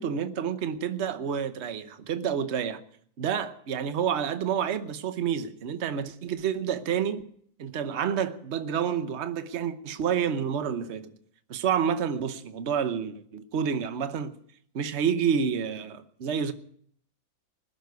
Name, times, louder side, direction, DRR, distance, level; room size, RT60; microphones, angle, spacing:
voice 1, 0.0-2.8 3.2-7.3 7.6-11.1 11.5-14.3 14.7-16.5, right 7 dB, 50° right, 1.1 m, -29 dB
20.0 x 6.8 x 9.4 m
omnidirectional pair, 1.7 m